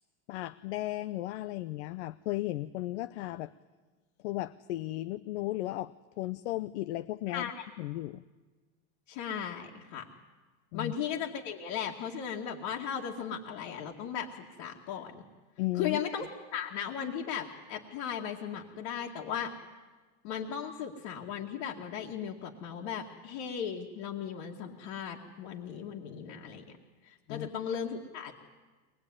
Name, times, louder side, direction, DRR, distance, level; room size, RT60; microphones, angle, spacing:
voice 1, 0.3-3.5 4.2-8.2 10.7-10.9 15.6-16.0 27.3-27.5, left 16 dB, 80° left, 12 dB, 0.8 m, -35 dB
voice 2, 7.3-7.6 9.1-10.1 10.7-15.2 15.8-16.3 16.5-19.5 20.2-26.6 27.0-28.3, left 8 dB, 65° left, -2 dB, 2.3 m, -37 dB
23.0 x 20.0 x 9.8 m, 1.3 s
supercardioid pair, 125°, 34 cm